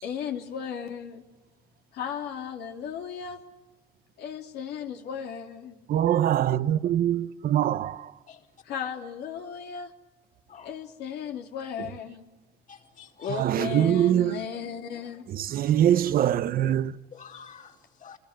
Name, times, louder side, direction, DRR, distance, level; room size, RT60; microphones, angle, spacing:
voice 1, 0.0-1.2 1.9-3.4 4.2-5.8 8.6-9.9 10.6-12.2 13.2-15.3, left 7 dB, 75° left, 3.0 m, -35 dB
voice 2, 5.9-7.2 7.5-7.8 13.4-14.3 15.5-16.8, right 11 dB, 60° right, 0.9 m, -22 dB
voice 3, 12.7-13.4 17.1-18.2, left 6 dB, 50° left, 4.4 m, -48 dB
27.5 x 21.5 x 8.3 m
cardioid pair, 110°, 17 cm